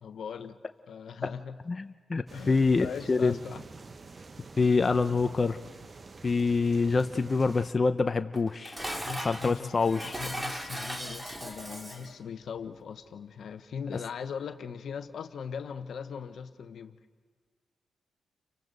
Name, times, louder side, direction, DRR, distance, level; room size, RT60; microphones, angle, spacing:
voice 1, 0.0-0.6 0.9-1.6 2.3-3.6 9.0-9.7 10.0-17.0, left 6 dB, 75° left, 9 dB, 1.0 m, -39 dB
voice 2, 1.7-3.4 4.6-5.6 6.2-8.8 9.2-10.2, left 4 dB, 40° left, 8 dB, 0.7 m, -26 dB
sound 1, 2.3-7.7, right 3 dB, 40° right, 0.9 m, -48 dB
Dishes pots and pans, 8.3-12.2, equal, 20° right, 2.2 m, -38 dB
29.5 x 24.5 x 4.1 m, 1.5 s
cardioid pair, 60°, 0 cm